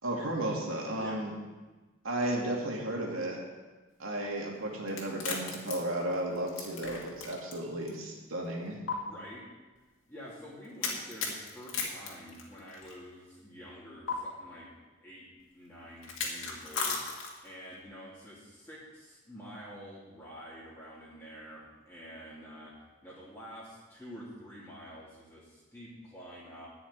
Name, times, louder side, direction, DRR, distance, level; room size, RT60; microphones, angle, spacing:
voice 1, 0.0-1.3 2.0-3.4 4.0-8.8, right 1 dB, 85° right, -2 dB, 2.6 m, -34 dB
sound 1, 4.9-7.6 7.9-8.0 8.9-9.0 10.8-12.9 14.1-14.2 16.0-17.5, left 5 dB, 70° left, 2.3 m, -35 dB
voice 2, 9.0-9.4 10.1-14.7 15.0-15.2 15.5-17.0 17.4-22.7 23.0-26.7, equal, 10° left, -8 dB, 2.7 m, -48 dB
11.5 x 6.4 x 9.4 m, 1.2 s
head